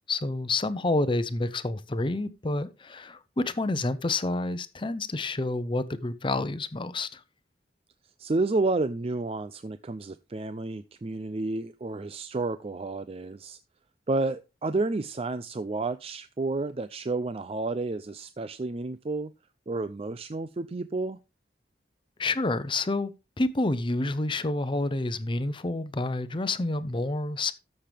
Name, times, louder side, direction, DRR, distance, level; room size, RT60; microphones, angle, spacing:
voice 1, 0.1-7.2 22.2-23.1 23.4-27.5, left 2 dB, 30° left, 0.7 m, -28 dB
voice 2, 8.2-13.6 14.1-19.3 19.7-21.2, right 3 dB, 35° right, 0.4 m, -30 dB
13.5 x 6.7 x 3.4 m
head